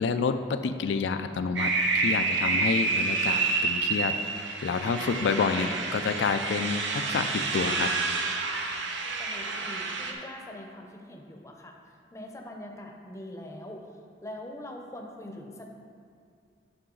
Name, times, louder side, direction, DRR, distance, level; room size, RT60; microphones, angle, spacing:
voice 1, 0.0-1.7 1.9-4.1 4.6-7.9, left 5 dB, 85° left, 8 dB, 0.3 m, -28 dB
sound 1, 1.6-10.1, right 3 dB, 90° right, 0.7 m, -28 dB
voice 2, 9.0-15.7, left 1 dB, 15° left, 2 dB, 0.6 m, -43 dB
8.7 x 5.7 x 3.8 m, 2.3 s
head